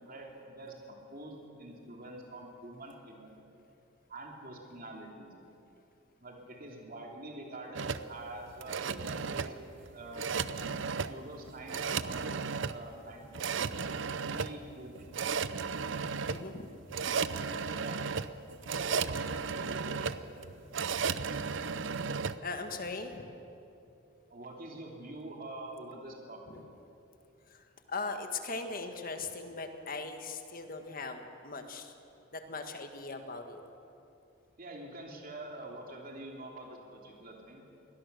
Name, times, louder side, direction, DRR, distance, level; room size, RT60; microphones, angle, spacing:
voice 1, 0.0-3.3 4.1-5.3 6.2-9.5 9.9-10.3 11.1-12.4 12.7-13.3 13.8-15.7 17.8-18.0 18.8-20.1 24.3-26.6 34.6-37.7, right 1 dB, 45° right, 0 dB, 3.1 m, -46 dB
sound 1, 7.7-22.4, right 5 dB, 65° right, 0.6 m, -35 dB
voice 2, 16.3-16.7 22.4-23.2 26.5-26.6 27.5-31.9 32.3-33.6, left 3 dB, 45° left, 6 dB, 1.7 m, -39 dB
22.5 x 18.5 x 6.9 m, 2.8 s
head